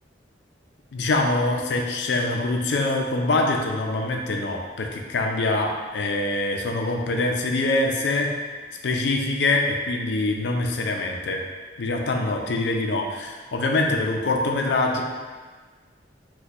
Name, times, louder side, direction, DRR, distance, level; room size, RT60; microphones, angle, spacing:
voice 1, 0.9-8.3 8.8-11.4 11.8-15.0, left 2 dB, 65° left, 2 dB, 0.4 m, -24 dB
3.0 x 2.2 x 4.1 m, 1.5 s
head